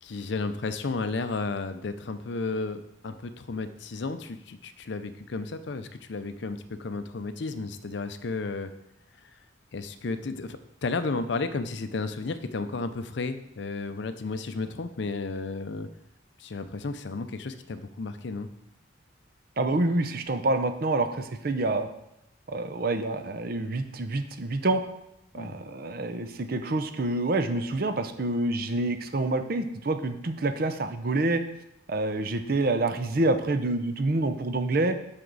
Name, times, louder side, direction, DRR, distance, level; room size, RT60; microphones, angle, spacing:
voice 1, 0.0-8.7 9.7-15.9 16.4-18.5 25.4-25.6, left 3 dB, 60° left, 10 dB, 0.5 m, -33 dB
voice 2, 19.6-21.9 22.5-24.8 25.3-31.4 31.9-35.0, right 2 dB, 45° right, 9 dB, 0.6 m, -27 dB
7.9 x 5.9 x 4.0 m, 0.82 s
head